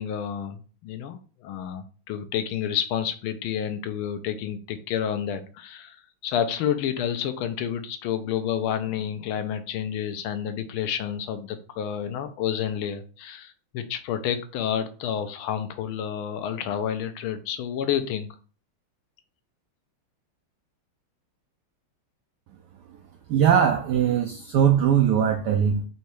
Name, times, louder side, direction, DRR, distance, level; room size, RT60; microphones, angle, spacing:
voice 1, 0.0-6.0 6.2-18.3, left 9 dB, 80° left, 1.4 m, -29 dB
voice 2, 23.3-25.8, right 8 dB, 80° right, 0.9 m, -20 dB
4.1 x 2.7 x 4.6 m
omnidirectional pair, 2.4 m